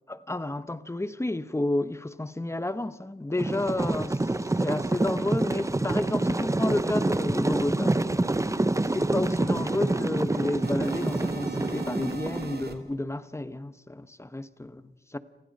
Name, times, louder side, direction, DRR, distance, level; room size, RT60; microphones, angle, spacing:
voice 1, 0.1-4.2 4.6-8.0 8.3-8.4 8.8-15.2, left 2 dB, 15° left, 1.0 m, -31 dB
sound 1, 3.4-12.5, right 2 dB, 15° right, 0.8 m, -27 dB
sound 2, 6.4-6.5 6.8-12.8, right 4 dB, 55° right, 2.9 m, -39 dB
29.5 x 27.0 x 5.4 m
wide cardioid pair, 140°, 20 cm